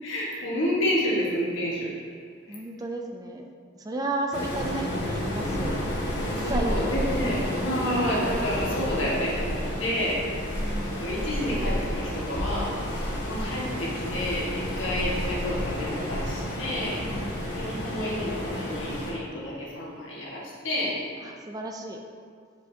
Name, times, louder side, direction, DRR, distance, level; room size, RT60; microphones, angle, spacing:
voice 1, 0.0-1.9 2.5-2.6 6.4-10.3 11.0-12.8 13.3-17.0 17.5-21.0, equal, 75° left, -6 dB, 1.5 m, -29 dB
voice 2, 2.5-3.4 3.7-5.8 6.3-7.4 10.6-11.2 17.0-17.6 21.2-22.0, right 2 dB, 20° right, 2 dB, 0.4 m, -34 dB
Waves surf, 4.3-19.1, equal, 55° left, 1.2 m, -30 dB
7.0 x 5.0 x 2.8 m, 2.1 s
head